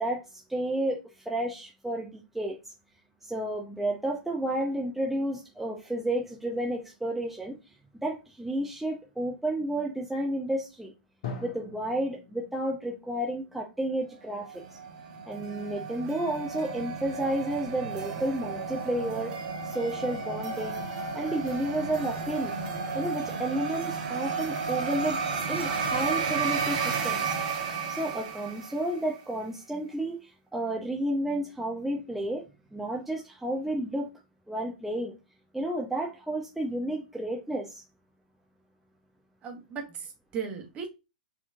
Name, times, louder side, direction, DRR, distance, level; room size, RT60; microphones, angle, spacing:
voice 1, 0.0-2.6 3.2-7.6 8.0-10.9 11.4-14.5 15.2-19.4 19.6-20.8 21.1-22.5 22.9-25.2 25.5-27.4 27.9-32.4 32.7-34.1 34.5-35.1 35.5-37.8, right 1 dB, 5° right, -2 dB, 0.8 m, -31 dB
Drum, 11.2-14.9, left 5 dB, 60° left, 1.1 m, -44 dB
sound 1, 14.4-29.1, right 5 dB, 55° right, 1.3 m, -33 dB
voice 2, 39.4-40.9, right 6 dB, 30° right, 3 dB, 1.4 m, -37 dB
4.4 x 3.0 x 3.7 m, 0.27 s
figure-of-eight pair, 110°, 5 cm